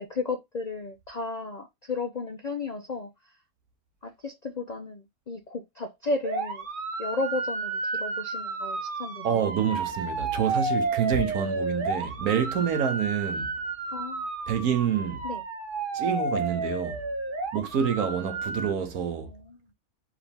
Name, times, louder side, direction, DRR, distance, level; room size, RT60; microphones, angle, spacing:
voice 1, 0.0-3.1 4.0-6.7 7.0-9.3 13.9-14.3 15.2-15.4 19.3-19.6, left 3 dB, 50° left, 0.5 m, -34 dB
sound 1, 6.2-18.7, right 3 dB, 40° right, 0.9 m, -31 dB
voice 2, 9.2-13.5 14.5-15.3 15.9-17.0 17.5-19.3, right 8 dB, 75° right, 1.4 m, -27 dB
5.0 x 2.8 x 3.5 m
omnidirectional pair, 1.6 m